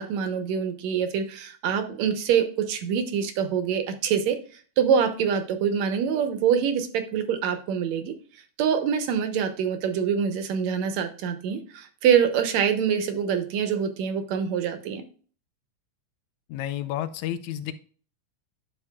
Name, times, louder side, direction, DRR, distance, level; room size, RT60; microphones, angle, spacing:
voice 1, 0.0-4.4 4.8-8.1 8.6-15.0, right 7 dB, 70° right, 8 dB, 2.1 m, -25 dB
voice 2, 16.5-17.7, left 12 dB, 75° left, 12 dB, 2.0 m, -31 dB
10.5 x 6.3 x 2.3 m, 0.41 s
omnidirectional pair, 3.6 m